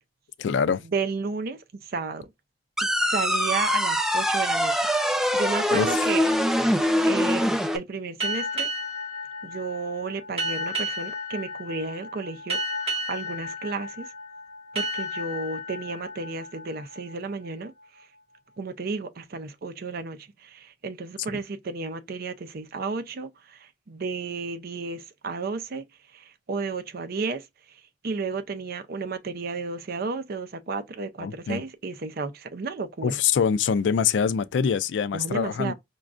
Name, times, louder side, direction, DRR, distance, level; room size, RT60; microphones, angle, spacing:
voice 1, 0.4-0.8 5.7-6.0 21.3-21.4 31.2-31.6 33.0-35.7, left 6 dB, 80° left, 0.3 m, -24 dB
voice 2, 0.9-2.3 2.8-4.7 5.3-6.3 7.0-8.7 9.4-12.6 13.1-14.1 14.7-17.7 18.6-25.8 26.1-27.4 28.0-33.1 35.1-35.7, right 4 dB, 55° right, 0.5 m, -32 dB
sound 1, 2.8-7.8, equal, 5° right, 0.4 m, -23 dB
sound 2, 8.2-17.5, equal, 35° right, 1.2 m, -33 dB
5.0 x 2.3 x 2.4 m
head